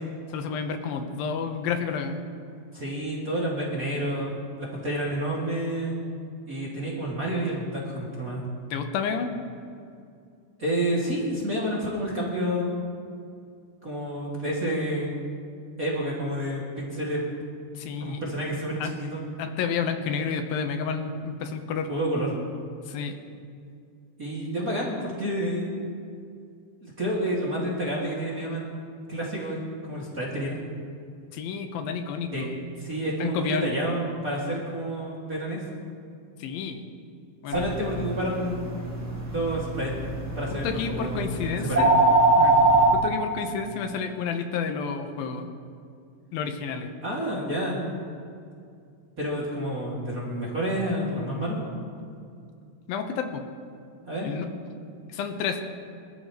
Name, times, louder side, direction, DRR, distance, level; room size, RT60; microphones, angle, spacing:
voice 1, 0.3-2.2 8.7-9.3 17.8-18.2 18.8-19.0 19.4-21.9 22.9-23.2 31.3-32.5 33.2-33.8 36.4-36.9 37.4-37.7 40.5-41.9 42.3-42.5 42.9-45.5 46.3-46.9 52.9-53.4 54.2-54.5 55.1-55.6, left 6 dB, 75° left, 6 dB, 2.8 m, -30 dB
voice 2, 2.7-6.0 6.5-8.4 10.6-12.7 13.8-15.1 15.8-17.2 18.0-19.2 21.9-22.3 24.2-25.7 26.8-28.8 29.1-29.6 29.9-30.6 32.3-32.4 32.8-35.6 37.5-38.5 39.2-41.3 41.6-41.9 42.5-42.7 47.0-47.8 49.2-51.7 54.1-54.3, right 1 dB, 25° right, -6 dB, 2.4 m, -29 dB
sound 1, 37.5-42.9, right 2 dB, 5° right, 1.3 m, -23 dB
26.5 x 14.0 x 3.2 m, 2.4 s
omnidirectional pair, 4.4 m